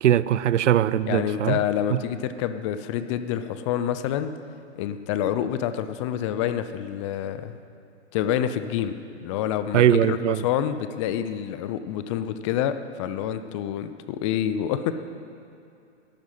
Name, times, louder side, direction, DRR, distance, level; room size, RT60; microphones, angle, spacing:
voice 1, 0.0-1.6 1.9-2.0 9.7-10.5, right 11 dB, 75° right, 0.6 m, -21 dB
voice 2, 1.1-4.3 4.8-7.6 8.1-9.0 9.2-14.9, left 10 dB, 25° left, 0.6 m, -27 dB
18.0 x 12.0 x 5.7 m
hypercardioid pair, 135°, 36 cm